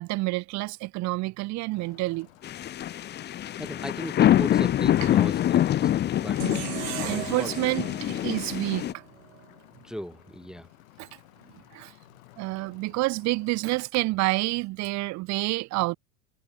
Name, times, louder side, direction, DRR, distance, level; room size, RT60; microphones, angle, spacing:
voice 1, 0.0-2.3 7.0-8.9 11.0-11.1 11.7-11.9 12.4-16.0, right 21 dB, 45° right, 1.1 m, -28 dB
sound 1, 1.7-13.7, left 19 dB, 85° left, 5.4 m, -55 dB
sound 2, 2.4-8.9, left 12 dB, 25° left, 0.9 m, -25 dB
voice 2, 3.6-6.5 7.0-7.5 9.8-10.7, equal, ahead, 0.7 m, -38 dB
sound 3, 6.4-9.5, right 22 dB, 80° right, 1.9 m, -38 dB
supercardioid pair, 145°, 40 cm